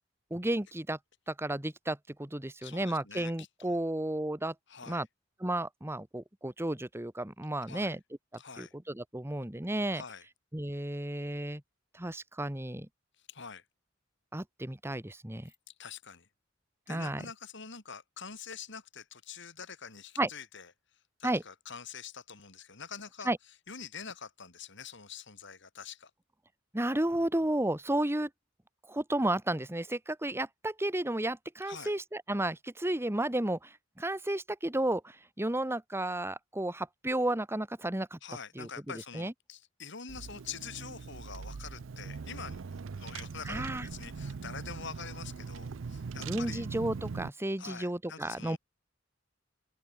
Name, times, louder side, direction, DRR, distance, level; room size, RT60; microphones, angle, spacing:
voice 1, 0.3-1.0 1.3-4.5 4.9-5.1 5.4-8.0 8.6-10.0 10.5-11.6 11.9-12.9 14.3-15.5 16.9-17.2 20.2-20.3 21.2-21.4 23.2-23.4 26.7-28.3 28.8-38.2 38.5-38.7 39.1-39.3 43.5-43.9 46.2-48.6, right 1 dB, 15° right, 1.3 m, -32 dB
voice 2, 2.6-3.8 4.7-5.0 7.7-8.0 8.4-8.7 9.9-10.3 13.3-13.6 15.7-16.3 16.9-20.7 21.2-23.3 23.7-26.1 31.6-31.9 38.2-42.6 42.9-46.7 47.6-48.6, left 6 dB, 65° left, 3.4 m, -45 dB
Car / Engine, 40.1-47.3, right 5 dB, 70° right, 0.5 m, -41 dB
open air
head